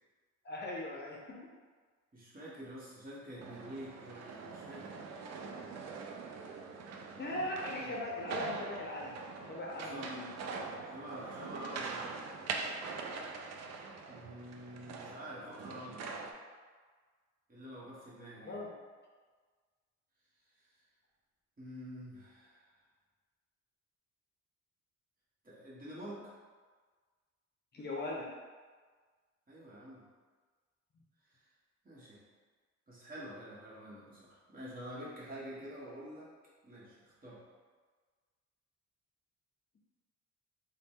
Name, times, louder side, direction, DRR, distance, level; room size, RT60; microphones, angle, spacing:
voice 1, 0.4-1.4 7.2-9.2 9.5-10.3 18.4-18.7 27.7-28.3, left 1 dB, 35° left, -3 dB, 0.6 m, -39 dB
voice 2, 2.1-5.0 7.6-7.9 9.8-10.2 10.8-12.2 14.1-16.1 17.5-18.6 20.6-20.7 21.6-22.7 25.4-26.3 29.5-30.0 31.3-31.5 31.8-32.2 32.9-36.3 36.6-37.4, equal, 30° right, -7 dB, 1.2 m, -47 dB
sound 1, 3.4-16.3, right 4 dB, 60° right, 0.5 m, -43 dB
3.8 x 2.2 x 3.6 m, 1.5 s
cardioid pair, 90°, 30 cm